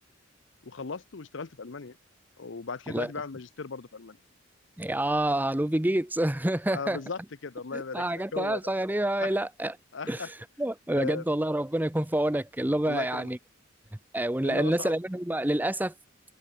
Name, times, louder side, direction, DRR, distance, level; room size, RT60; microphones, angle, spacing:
voice 1, 0.6-2.0 2.4-4.2 6.7-8.7 9.2-9.4 9.9-10.3 10.9-11.2 12.8-13.3 14.4-14.9, left 4 dB, 60° left, 0.7 m, -37 dB
voice 2, 4.8-7.0 7.7-9.7 10.1-10.3 10.6-13.4 14.1-15.9, right 1 dB, 10° right, 0.6 m, -27 dB
head